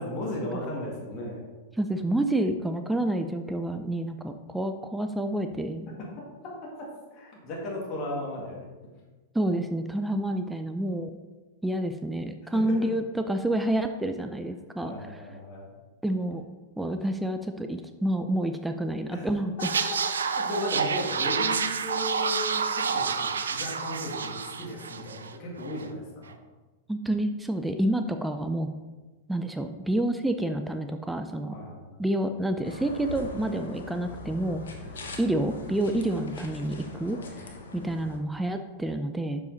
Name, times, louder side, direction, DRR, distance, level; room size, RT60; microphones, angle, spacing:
voice 1, 0.0-1.4 6.4-8.7 12.5-12.8 14.8-15.7 19.1-19.3 20.4-26.4 31.5-32.0 34.8-35.0 37.1-37.3, left 1 dB, 40° left, -3 dB, 2.1 m, -36 dB
voice 2, 1.7-5.9 9.3-11.1 11.6-14.9 16.0-16.4 16.8-19.7 26.9-28.7 29.3-31.5 32.0-34.6 35.2-37.2 37.7-39.4, right 1 dB, 5° right, 6 dB, 0.4 m, -28 dB
sound 1, 19.6-25.3 25.6-25.8, right 5 dB, 85° right, 0.4 m, -29 dB
sound 2, 32.6-38.2, left 2 dB, 80° left, 1.1 m, -42 dB
6.5 x 5.4 x 4.0 m, 1.2 s
hypercardioid pair, 105°, 0 cm